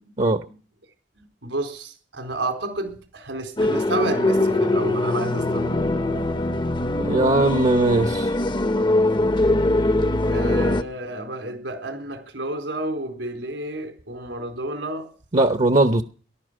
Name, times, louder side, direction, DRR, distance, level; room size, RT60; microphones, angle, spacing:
voice 1, 1.4-5.9 10.2-15.1, right 2 dB, 85° right, 4.1 m, -30 dB
sound 1, 3.6-10.8, left 2 dB, 25° left, 0.7 m, -22 dB
voice 2, 7.0-8.3 15.3-16.0, right 2 dB, 40° right, 0.8 m, -19 dB
18.5 x 12.0 x 6.3 m
head